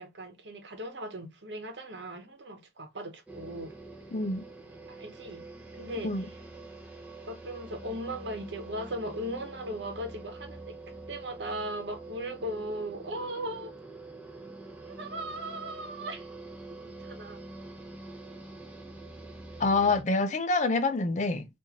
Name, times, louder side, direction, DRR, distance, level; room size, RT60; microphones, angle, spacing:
voice 1, 0.0-3.7 4.9-5.4 5.7-6.4 7.3-10.8 11.1-13.7 14.9-16.3 16.7-17.4 20.3-20.4, right 1 dB, 80° right, 1.0 m, -38 dB
sound 1, 3.3-20.0, right 2 dB, 10° right, 0.7 m, -45 dB
voice 2, 4.1-4.4 6.0-6.2 19.6-21.5, left 3 dB, 40° left, 0.5 m, -26 dB
3.1 x 2.6 x 3.7 m
head